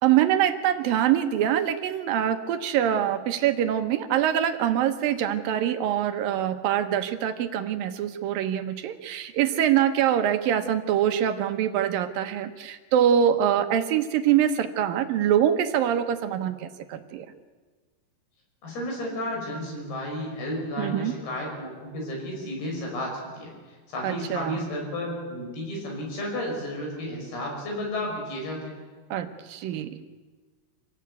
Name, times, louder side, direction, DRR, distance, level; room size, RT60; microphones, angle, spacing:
voice 1, 0.0-17.3 20.8-21.1 24.0-24.6 29.1-30.0, right 10 dB, 70° right, 9 dB, 2.4 m, -24 dB
voice 2, 18.6-28.8, left 1 dB, 65° left, 0 dB, 8.0 m, -33 dB
27.0 x 16.5 x 8.3 m, 1.4 s
omnidirectional pair, 5.0 m